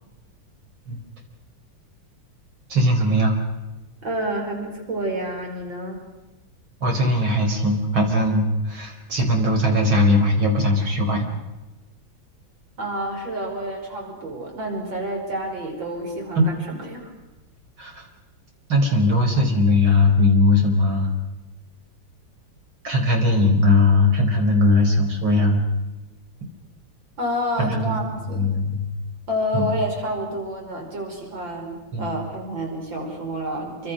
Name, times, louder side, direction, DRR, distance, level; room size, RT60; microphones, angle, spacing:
voice 1, 2.7-3.4 6.8-11.3 17.8-18.0 18.7-21.1 22.8-25.6 27.6-28.1 28.3-28.9 29.5-29.7 31.9-32.2, left 2 dB, 85° right, 3 dB, 5.4 m, -19 dB
voice 2, 4.0-6.0 12.8-17.1 27.2-28.6 29.3-33.9, equal, 70° right, 1 dB, 6.0 m, -29 dB
27.5 x 25.5 x 6.4 m, 1.1 s
omnidirectional pair, 2.2 m